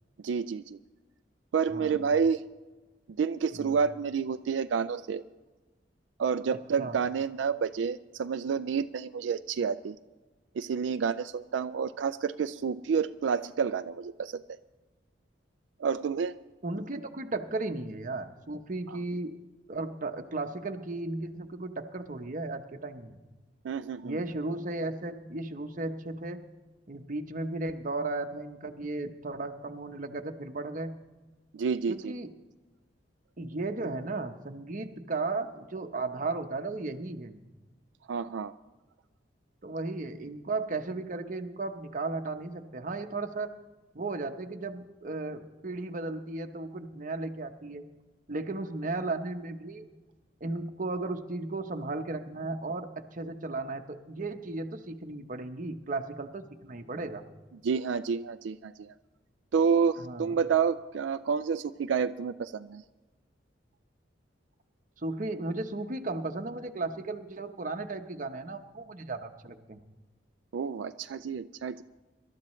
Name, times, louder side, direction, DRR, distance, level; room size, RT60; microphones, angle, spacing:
voice 1, 0.2-0.8 1.5-2.4 3.2-5.2 6.2-10.0 10.6-14.4 15.8-16.3 23.6-24.2 31.5-32.1 38.1-38.5 57.6-58.9 59.5-62.8 70.5-71.8, right 6 dB, 85° right, 10 dB, 0.4 m, -29 dB
voice 2, 1.7-2.0 3.6-3.8 6.8-7.0 16.6-19.4 19.7-23.2 24.0-26.4 26.9-31.0 31.9-32.3 33.4-37.4 39.6-43.5 43.9-47.8 48.3-49.8 50.4-57.3 60.0-60.4 65.0-69.8, right 2 dB, 45° right, 6 dB, 0.9 m, -35 dB
25.0 x 12.5 x 3.2 m, 1.2 s
head